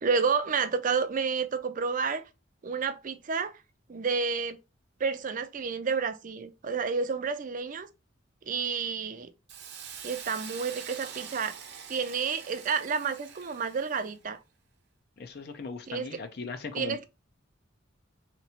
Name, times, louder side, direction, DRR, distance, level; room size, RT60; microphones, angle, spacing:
voice 1, 0.0-2.2 2.6-3.6 3.9-4.6 5.0-7.9 8.5-9.3 10.0-11.6 11.9-14.4 15.9-16.1 16.7-17.1, right 5 dB, 45° right, 0.5 m, -30 dB
Hiss, 9.5-14.2, right 7 dB, 60° right, 0.8 m, -44 dB
voice 2, 15.2-17.1, left 4 dB, 55° left, 0.5 m, -38 dB
3.4 x 2.9 x 4.1 m
head